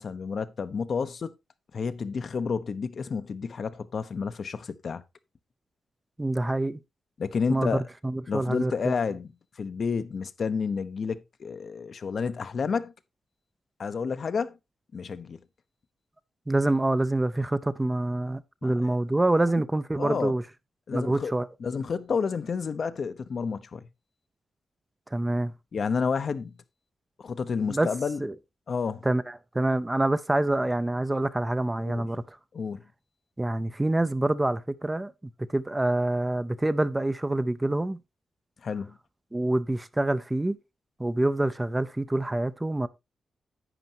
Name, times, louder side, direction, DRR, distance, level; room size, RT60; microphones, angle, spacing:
voice 1, 0.0-1.4 1.7-5.0 7.2-7.9 8.3-12.9 13.8-14.6 14.9-15.4 18.6-19.0 20.0-20.3 20.9-21.3 21.6-23.9 25.7-26.5 27.2-28.2 28.7-29.1 31.8-32.1 32.5-32.8 38.6-38.9, left 5 dB, 50° left, 0.7 m, -30 dB
voice 2, 6.2-6.8 7.5-7.7 8.0-8.9 16.5-20.4 20.9-21.5 25.1-25.5 27.7-27.9 28.2-28.3 29.0-32.4 33.4-35.1 35.5-38.0 39.3-40.6 41.0-42.9, right 2 dB, 15° right, 0.5 m, -26 dB
11.0 x 9.0 x 2.8 m
wide cardioid pair, 125°, 0 cm